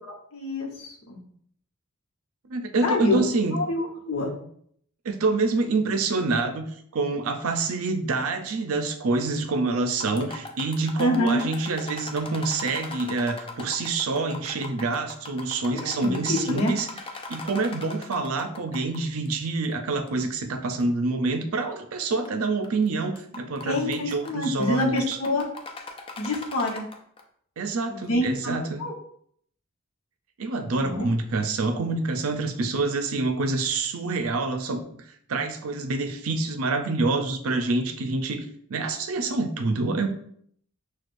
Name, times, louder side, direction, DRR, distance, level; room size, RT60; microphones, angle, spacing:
voice 1, 0.0-1.2 2.8-3.2 3.5-4.3 11.0-11.4 15.7-16.7 23.6-25.4 26.2-26.8 27.9-28.9 30.8-31.1, left 1 dB, 75° left, -1 dB, 1.0 m, -27 dB
voice 2, 2.5-3.6 5.0-16.9 17.3-25.2 27.6-28.8 30.4-34.8 35.3-40.1, right 3 dB, 70° right, 7 dB, 0.5 m, -27 dB
sound 1, 9.9-19.0 19.3-19.4 20.1-20.2 20.8-20.9 22.0-22.3 22.6-22.9 23.2-27.2, left 3 dB, 25° left, 0.4 m, -40 dB
6.1 x 2.3 x 2.5 m, 0.65 s
head